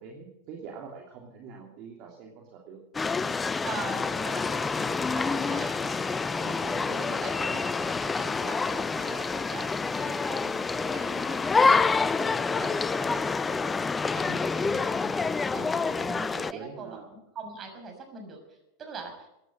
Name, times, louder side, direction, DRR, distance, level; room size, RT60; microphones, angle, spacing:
voice 1, 0.0-2.8 15.9-17.0, right 6 dB, 50° right, -1 dB, 3.1 m, -44 dB
sound 1, 2.9-16.5, left 4 dB, 15° left, 0.5 m, -27 dB
voice 2, 3.6-6.0 6.3-13.6 14.1-19.3, right 4 dB, 30° right, 3 dB, 6.2 m, -42 dB
16.0 x 10.5 x 7.9 m, 0.86 s
hypercardioid pair, 95°, 0 cm